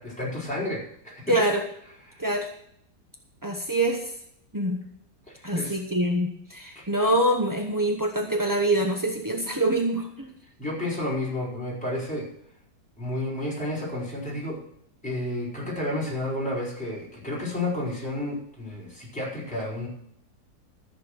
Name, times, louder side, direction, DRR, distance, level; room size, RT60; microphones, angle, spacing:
voice 1, 0.0-1.4 2.1-2.3 5.3-5.8 6.7-6.8 10.6-12.3 13.0-14.6 15.0-19.9, left 1 dB, 5° left, -6 dB, 4.5 m, -31 dB
voice 2, 1.3-1.6 2.2-2.5 3.4-4.1 4.5-4.8 5.4-10.3, right 1 dB, 20° right, 2 dB, 0.5 m, -25 dB
14.0 x 6.9 x 6.5 m, 0.70 s
omnidirectional pair, 1.9 m